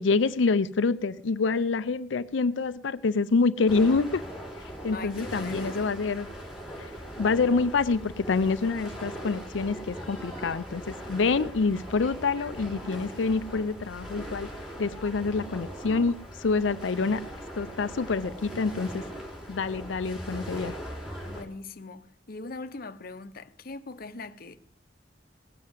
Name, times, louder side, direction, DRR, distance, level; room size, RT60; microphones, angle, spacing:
voice 1, 0.0-4.2 4.8-6.3 6.8-6.9 7.2-14.5 14.8-17.2 17.6-19.0 19.5-20.8, left 4 dB, 85° left, 0.5 m, -26 dB
sound 1, 3.7-21.4, equal, 5° right, 3.5 m, -40 dB
voice 2, 4.9-5.8 21.2-24.6, left 3 dB, 50° left, 0.9 m, -41 dB
18.5 x 7.5 x 8.0 m
head